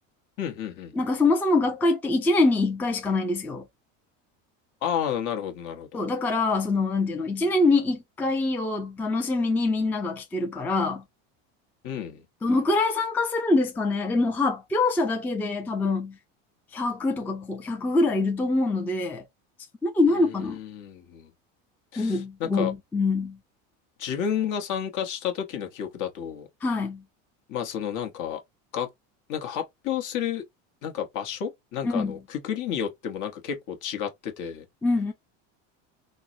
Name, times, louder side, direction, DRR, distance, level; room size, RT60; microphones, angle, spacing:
voice 1, 0.4-0.9 4.8-6.0 11.8-12.2 20.2-21.3 21.9-22.7 24.0-26.5 27.5-28.4 28.7-28.9 29.3-30.4 30.8-34.6, left 9 dB, 50° left, 1.0 m, -31 dB
voice 2, 0.9-3.7 5.9-11.0 12.4-16.2 16.7-19.3 19.8-20.6 22.0-23.4 26.6-27.0 31.8-32.2 34.8-35.1, left 3 dB, 5° left, 0.4 m, -24 dB
3.7 x 2.0 x 2.5 m
supercardioid pair, 110°, 38 cm